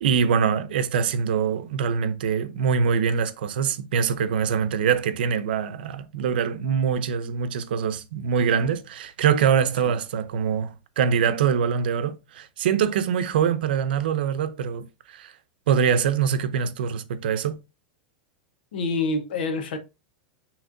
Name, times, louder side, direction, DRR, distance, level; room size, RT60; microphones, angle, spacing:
voice 1, 0.0-15.3 15.7-17.6, right 7 dB, 85° right, 0.7 m, -24 dB
voice 2, 18.7-19.8, left 3 dB, 90° left, 0.9 m, -27 dB
6.3 x 3.2 x 2.5 m
supercardioid pair, 165°, 5 cm